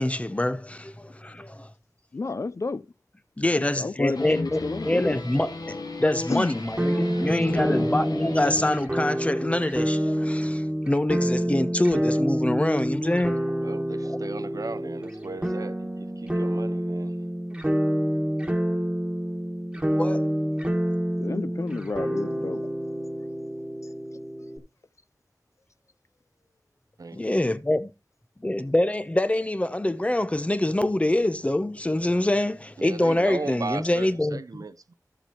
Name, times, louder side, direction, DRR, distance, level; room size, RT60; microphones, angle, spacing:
voice 1, 0.0-1.7 3.4-13.4 14.0-14.2 19.9-20.2 27.1-27.9 28.4-34.6, left 1 dB, 20° left, 0.7 m, -25 dB
voice 2, 2.1-2.8 3.5-5.2 6.3-6.6 7.1-8.0 21.2-22.7, left 3 dB, 50° left, 0.4 m, -31 dB
sound 1, 4.1-9.2, left 2 dB, 85° left, 1.2 m, -36 dB
sound 2, 6.8-24.6, equal, 15° right, 1.7 m, -27 dB
voice 3, 13.6-15.9 16.2-17.2 27.0-27.2 32.8-34.9, right 3 dB, 60° right, 0.5 m, -36 dB
12.5 x 7.2 x 2.9 m
wide cardioid pair, 75°, 7 cm